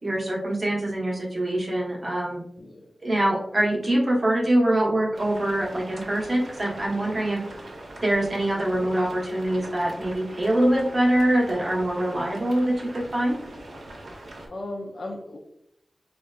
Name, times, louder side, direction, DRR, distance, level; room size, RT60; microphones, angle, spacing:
voice 1, 0.0-2.4 3.0-7.4 8.0-13.4, right 1 dB, 35° right, -3 dB, 0.9 m, -24 dB
voice 2, 2.6-2.9 14.5-15.4, left 1 dB, 60° left, 0 dB, 0.4 m, -36 dB
sound 1, 5.1-14.5, right 1 dB, 75° right, 0.7 m, -42 dB
3.7 x 2.3 x 2.3 m, 0.73 s
wide cardioid pair, 100°, 0 cm